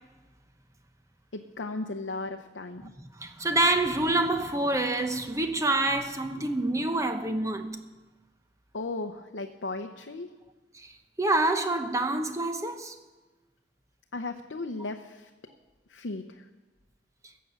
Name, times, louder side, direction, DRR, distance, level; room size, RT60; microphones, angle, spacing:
voice 1, 1.3-2.9 8.7-10.3 14.1-15.3 15.9-16.4, left 2 dB, 85° left, 0.7 m, -36 dB
voice 2, 3.0-7.8 10.7-10.9 11.2-12.9, right 2 dB, 15° right, 0.9 m, -27 dB
16.0 x 7.6 x 6.9 m
head